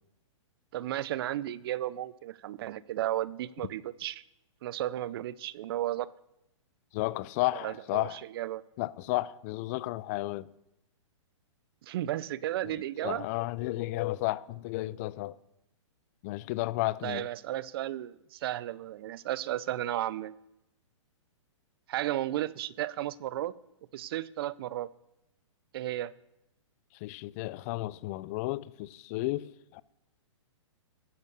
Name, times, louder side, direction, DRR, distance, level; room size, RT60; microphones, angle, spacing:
voice 1, 0.7-4.2 4.6-6.1 7.6-8.6 11.8-13.3 17.0-20.3 21.9-23.5 23.9-24.9 25.7-26.1, right 13 dB, 50° right, 0.6 m, -34 dB
voice 2, 6.9-8.2 8.8-10.5 12.6-12.7 13.0-15.4 16.2-17.3 27.0-29.8, left 18 dB, 30° left, 0.4 m, -33 dB
13.5 x 8.1 x 6.8 m
hypercardioid pair, 145°, 16 cm